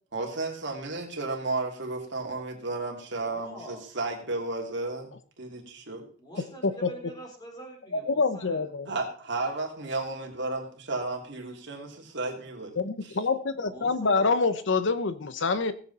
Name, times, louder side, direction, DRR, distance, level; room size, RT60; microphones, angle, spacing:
voice 1, 0.1-6.0 6.4-6.5 8.9-12.7, right 2 dB, 65° right, 0 dB, 3.1 m, -33 dB
voice 2, 3.2-3.8 6.1-8.6 13.6-14.4, right 1 dB, 20° left, 1 dB, 4.1 m, -45 dB
voice 3, 8.1-8.9 12.8-15.7, left 4 dB, 65° left, 13 dB, 0.8 m, -26 dB
18.0 x 8.0 x 4.2 m, 0.43 s
head